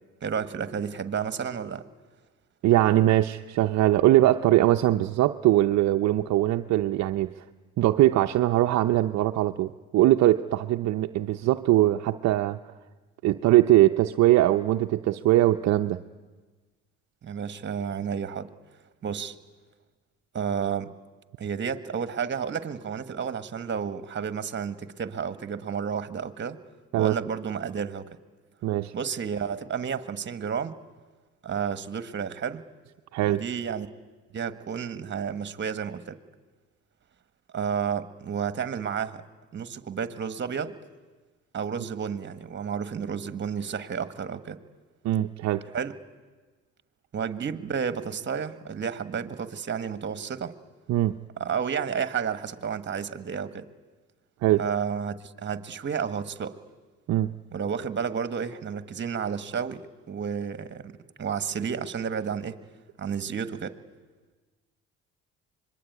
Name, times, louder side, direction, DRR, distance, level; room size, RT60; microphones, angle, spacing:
voice 1, 0.2-1.8 17.2-18.5 19.0-19.3 20.3-20.9 21.4-26.6 27.0-28.1 28.9-30.7 31.4-32.6 33.2-33.9 34.3-36.2 37.5-39.2 39.5-40.7 41.5-44.6 45.7-45.9 47.1-50.5 51.4-53.7 54.6-56.6 57.5-60.9 61.2-62.6 63.0-63.8, right 7 dB, 40° right, 12 dB, 1.6 m, -31 dB
voice 2, 2.6-7.3 7.8-12.6 13.2-16.0 26.9-27.1 28.6-28.9 33.1-33.4 45.0-45.6 50.9-51.1 54.4-54.6 57.1-57.3, right 14 dB, 60° right, 6 dB, 0.7 m, -21 dB
25.0 x 21.5 x 9.5 m, 1.3 s
supercardioid pair, 80°, 30 cm